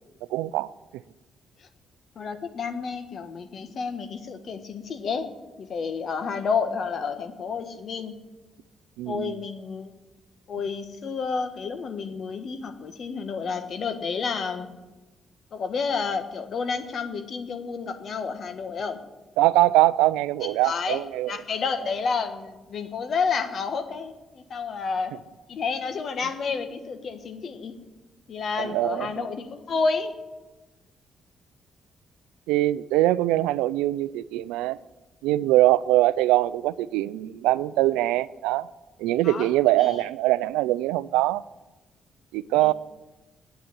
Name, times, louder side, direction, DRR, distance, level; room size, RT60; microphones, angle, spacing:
voice 1, 0.3-0.7 9.0-9.4 19.4-21.4 28.6-29.3 32.5-34.8 35.2-38.7 39.0-41.4 42.3-42.7, right 16 dB, 90° right, 18 dB, 0.3 m, -22 dB
voice 2, 2.1-5.3 5.6-8.1 9.1-9.9 10.5-14.7 15.5-19.0 20.4-25.2 25.5-27.7 28.3-30.1 39.2-39.5 39.8-40.0 42.6-42.7, left 5 dB, 60° left, 9 dB, 1.3 m, -30 dB
9.1 x 8.7 x 9.3 m, 1.1 s
supercardioid pair, 60°, 0 cm